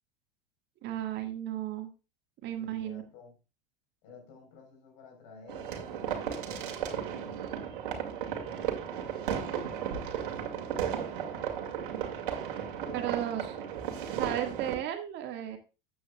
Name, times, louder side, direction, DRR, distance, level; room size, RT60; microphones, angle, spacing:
voice 1, 0.8-1.9 2.4-3.0 12.9-13.4 14.1-15.6, right 11 dB, 35° right, 1.7 m, -34 dB
voice 2, 2.5-3.3 4.0-7.8 8.4-9.3 10.4-11.9 12.8-13.5, left 3 dB, 50° left, 3.9 m, -52 dB
sound 1, 5.5-14.7, right 8 dB, 60° right, 2.2 m, -35 dB
13.5 x 8.7 x 2.3 m
figure-of-eight pair, 85°, 29 cm